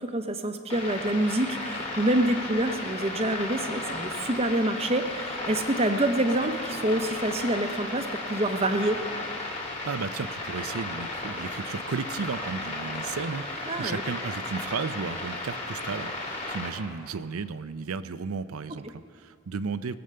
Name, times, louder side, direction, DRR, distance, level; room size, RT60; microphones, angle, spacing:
voice 1, 0.0-9.0 13.7-14.0, right 1 dB, 30° right, 7 dB, 0.8 m, -27 dB
sound 1, 0.7-16.7, left 2 dB, 30° left, 2.5 m, -35 dB
voice 2, 9.8-20.0, right 5 dB, 85° right, 14 dB, 0.5 m, -34 dB
20.0 x 8.0 x 6.7 m, 2.1 s
head